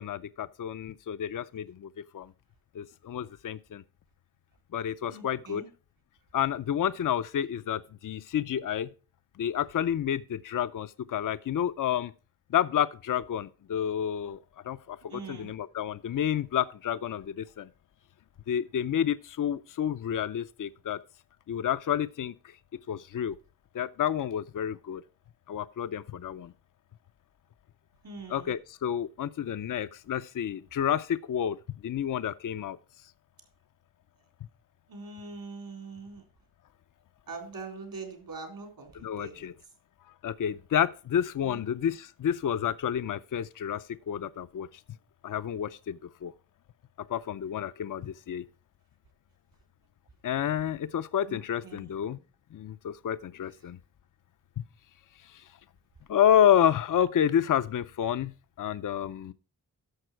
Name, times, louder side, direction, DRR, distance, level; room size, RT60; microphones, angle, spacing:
voice 1, 0.0-2.3 2.7-3.8 4.7-5.6 6.3-8.9 9.4-12.1 12.5-14.4 14.6-17.7 18.5-21.0 21.5-22.3 22.9-23.4 23.7-25.0 25.5-26.5 28.3-31.6 31.8-32.8 39.0-39.5 40.2-44.7 45.2-46.3 47.1-48.4 50.2-52.2 52.5-53.8 54.6-54.7 55.3-55.4 56.1-59.3, left 9 dB, 65° left, 0.5 m, -29 dB
voice 2, 5.1-5.7 15.1-15.5 28.0-28.5 34.9-36.2 37.3-39.5 41.4-41.7 51.3-51.9, right 4 dB, 85° right, 3.7 m, -43 dB
11.5 x 6.8 x 4.5 m
wide cardioid pair, 90°, 35 cm